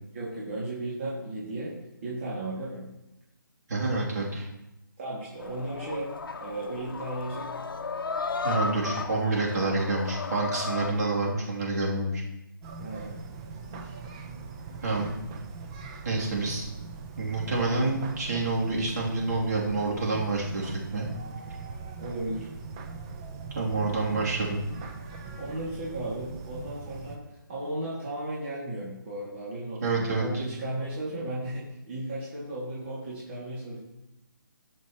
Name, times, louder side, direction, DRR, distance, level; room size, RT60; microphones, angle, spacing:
voice 1, 0.1-1.7 2.0-2.9 5.0-6.1 6.4-7.5 12.8-13.2 22.0-22.5 25.4-27.2 27.5-33.8, right 1 dB, 30° right, -7 dB, 2.4 m, -35 dB
voice 2, 3.7-4.5 8.4-12.2 14.8-15.1 16.0-16.7 17.2-21.1 23.5-24.7 29.8-30.4, right 3 dB, 50° right, -4 dB, 3.0 m, -28 dB
sound 1, 5.4-10.9, left 4 dB, 75° left, 0.8 m, -34 dB
newyears partyfireworks, 12.6-27.2, right 4 dB, 15° right, 0.5 m, -41 dB
17.0 x 6.3 x 3.1 m, 0.90 s
hypercardioid pair, 165°, 12 cm